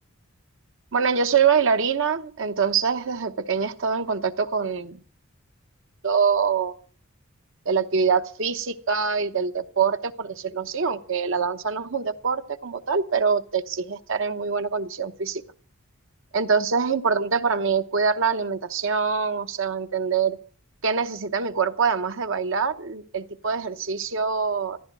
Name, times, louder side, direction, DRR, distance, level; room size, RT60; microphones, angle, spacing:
voice 1, 0.9-5.0 6.0-6.7 7.7-15.4 16.3-20.4 20.8-24.8, right 5 dB, 60° right, 9 dB, 0.9 m, -24 dB
15.0 x 13.0 x 6.2 m, 0.43 s
head